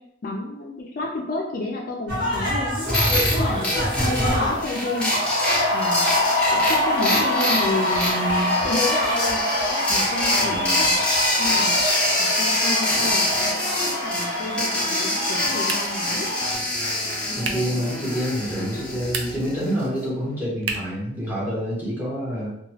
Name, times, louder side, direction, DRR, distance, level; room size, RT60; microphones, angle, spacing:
voice 1, 0.2-2.9 3.4-3.6 4.0-5.1 5.7-6.1 6.5-9.4 9.9-10.9 11.4-11.7 12.2-13.3 13.9-16.3, left 2 dB, 50° left, 0 dB, 0.4 m, -30 dB
sound 1, 2.1-16.5, left 1 dB, 50° right, 1.1 m, -25 dB
sound 2, 2.9-19.9, left 1 dB, 5° left, 0.6 m, -25 dB
voice 2, 10.4-11.0 14.5-14.6 17.4-22.5, equal, 10° right, -8 dB, 1.0 m, -27 dB
sound 3, 15.6-16.1 17.4-17.8 19.0-19.6 20.6-21.0, right 4 dB, 80° right, 0.4 m, -31 dB
2.9 x 2.2 x 2.7 m, 0.79 s
head